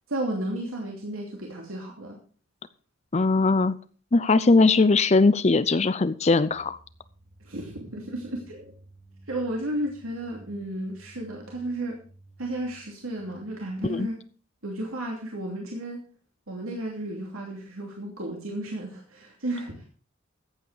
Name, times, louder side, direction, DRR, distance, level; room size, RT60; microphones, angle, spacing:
voice 1, 0.1-2.2 7.4-8.7 9.3-12.0 12.4-14.2 14.6-16.0 16.5-19.8, right 1 dB, 90° right, 0 dB, 2.8 m, -33 dB
voice 2, 3.1-3.7 4.1-6.8 13.8-14.1, left 3 dB, 30° left, 15 dB, 0.5 m, -20 dB
sound 1, 6.3-14.0, right 2 dB, 55° right, 5.1 m, -54 dB
14.5 x 8.6 x 4.9 m, 0.40 s
head